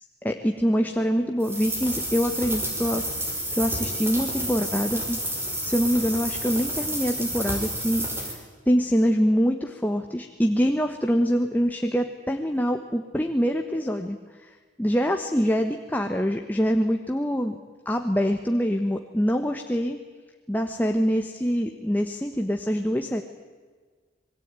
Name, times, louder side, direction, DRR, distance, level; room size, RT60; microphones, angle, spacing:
voice 1, 0.2-3.0 3.5-5.2 5.6-14.2 14.5-17.6 17.8-20.0 20.5-23.2, equal, 10° left, 4 dB, 1.3 m, -25 dB
sound 1, 1.4-8.4, right 1 dB, 15° right, 5.5 m, -30 dB
27.0 x 21.5 x 9.1 m, 1.5 s
head